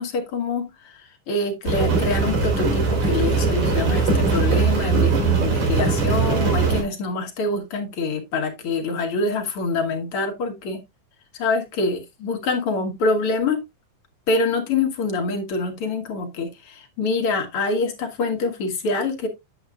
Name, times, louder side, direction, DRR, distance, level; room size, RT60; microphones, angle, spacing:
voice 1, 0.0-10.8 11.3-13.6 14.3-19.3, left 3 dB, 55° left, 1.8 m, -25 dB
Rain, 1.7-6.8, right 4 dB, 60° right, 4.4 m, -20 dB
9.3 x 7.2 x 2.4 m
omnidirectional pair, 3.6 m